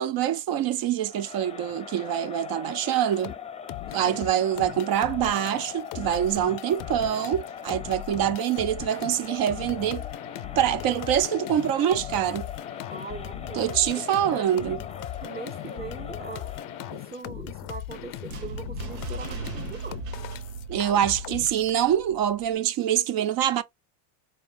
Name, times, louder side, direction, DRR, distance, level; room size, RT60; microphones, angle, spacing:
voice 1, 0.0-3.3 3.9-10.1 10.6-12.5 13.6-14.8 20.7-23.6, right 10 dB, 50° right, 0.7 m, -25 dB
Crowd, 1.0-17.2, left 7 dB, 15° left, 0.7 m, -40 dB
sound 1, 3.1-3.3 3.7-21.7, left 15 dB, 45° left, 0.5 m, -39 dB
voice 2, 3.8-4.4 12.9-14.0 14.3-14.9 15.2-16.5 16.9-20.0, right 5 dB, 20° right, 1.0 m, -41 dB
sound 2, 17.4-22.5, right 5 dB, 80° right, 1.0 m, -39 dB
4.5 x 3.2 x 2.5 m
supercardioid pair, 115°, 46 cm